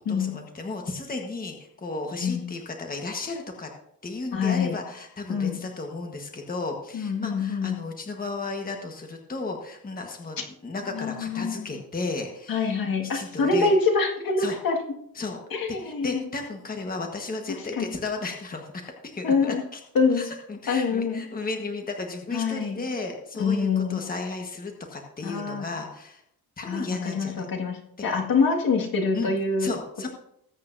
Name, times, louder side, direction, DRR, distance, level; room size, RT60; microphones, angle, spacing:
voice 1, 0.1-3.7 4.0-12.7 13.0-13.7 14.4-14.6 15.1-15.4 15.7-19.8 20.1-26.2 26.6-27.5 29.1-29.3 29.6-30.1, left 3 dB, 25° left, 3 dB, 1.4 m, -34 dB
voice 2, 4.3-4.7 5.3-5.6 6.9-7.7 10.9-11.8 12.5-14.8 15.5-16.2 17.8-17.9 19.2-19.6 19.9-20.2 20.7-21.2 22.3-22.8 23.4-24.0 25.2-25.7 26.7-29.7, left 4 dB, 65° left, 1 dB, 2.0 m, -25 dB
20.0 x 8.4 x 2.7 m, 0.76 s
cardioid pair, 135°, 38 cm